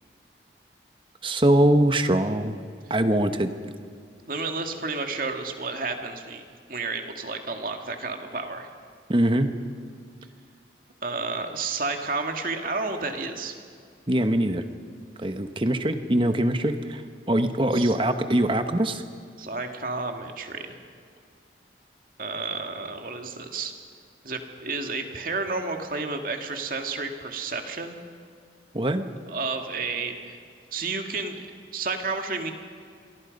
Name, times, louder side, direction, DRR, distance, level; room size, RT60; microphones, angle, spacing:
voice 1, 1.2-2.6 2.9-3.5 9.1-9.5 14.1-14.6 15.2-17.0 17.3-19.0 28.7-29.1, right 1 dB, 30° right, 8 dB, 1.2 m, -22 dB
voice 2, 4.3-6.4 6.7-8.7 11.0-13.6 17.7-18.0 19.4-20.8 22.2-23.7 24.2-28.0 29.3-30.4 30.7-31.4 31.7-32.5, right 3 dB, 50° right, 4 dB, 2.2 m, -31 dB
27.5 x 23.0 x 5.4 m, 2.2 s
head